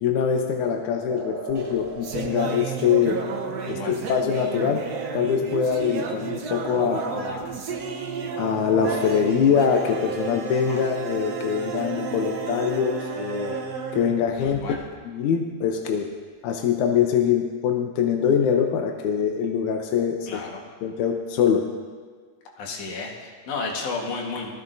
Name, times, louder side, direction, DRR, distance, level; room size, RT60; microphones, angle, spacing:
voice 1, 0.0-3.2 3.7-4.9 5.1-7.5 8.3-13.6 13.9-14.6 15.0-16.1 16.4-20.4 20.8-21.7, left 7 dB, 85° left, 4 dB, 2.2 m, -23 dB
sound 1, 1.1-8.1, right 3 dB, 20° right, 1.3 m, -42 dB
sound 2, 1.5-14.9, right 5 dB, 80° right, 0.8 m, -32 dB
voice 2, 3.6-3.9 10.6-10.8 14.4-14.8 20.3-20.6 22.6-24.5, left 4 dB, 60° left, -1 dB, 2.6 m, -32 dB
19.5 x 15.5 x 2.6 m, 1.5 s
omnidirectional pair, 3.4 m